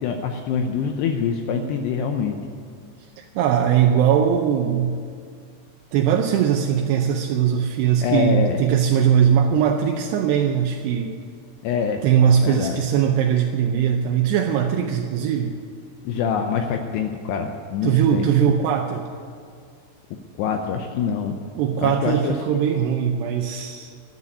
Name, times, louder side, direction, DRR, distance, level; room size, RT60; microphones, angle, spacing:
voice 1, 0.0-2.3 8.0-8.6 11.6-12.0 12.4-12.8 16.1-18.2 20.4-21.4 21.8-22.4, left 7 dB, 85° left, 4 dB, 2.4 m, -25 dB
voice 2, 3.2-5.0 5.9-11.2 12.0-15.6 17.8-19.1 21.6-24.1, right 8 dB, 85° right, 3 dB, 2.4 m, -20 dB
12.5 x 8.3 x 9.8 m, 2.2 s
omnidirectional pair, 5.5 m